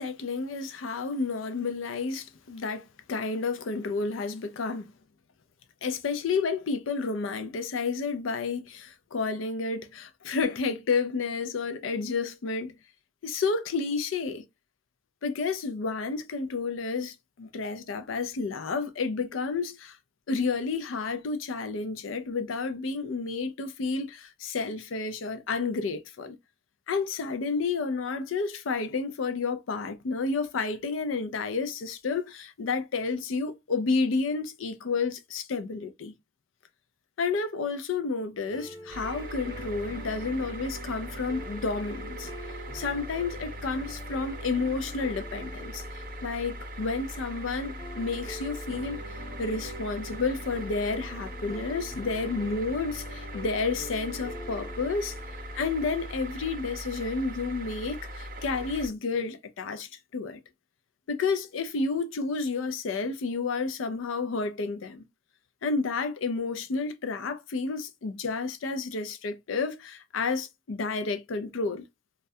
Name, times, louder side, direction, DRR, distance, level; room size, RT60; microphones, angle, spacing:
voice 1, 0.0-4.9 5.8-12.8 13.2-14.4 15.2-20.0 20.3-26.4 26.9-36.2 37.2-42.3 42.7-55.2 55.5-60.4 61.1-65.1 65.6-71.8, left 4 dB, 85° left, 0.4 m, -31 dB
sound 1, 38.5-56.5, equal, 20° left, 0.4 m, -45 dB
sound 2, 38.9-58.9, equal, 45° right, 0.5 m, -40 dB
2.3 x 2.1 x 2.6 m
head